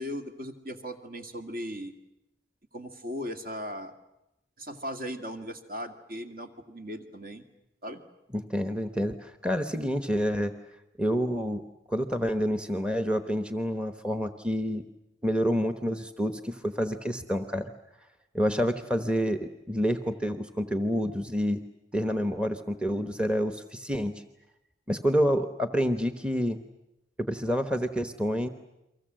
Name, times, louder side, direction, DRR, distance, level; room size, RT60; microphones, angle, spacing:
voice 1, 0.0-1.9 2.7-3.9 4.6-7.4 7.8-8.0, equal, 50° right, 6 dB, 2.2 m, -37 dB
voice 2, 8.3-10.5 11.0-11.6 11.9-14.8 15.2-17.7 18.3-21.6 21.9-24.2 24.9-26.6 27.2-28.5, equal, 5° right, 8 dB, 1.0 m, -28 dB
30.0 x 23.5 x 7.6 m, 0.92 s
head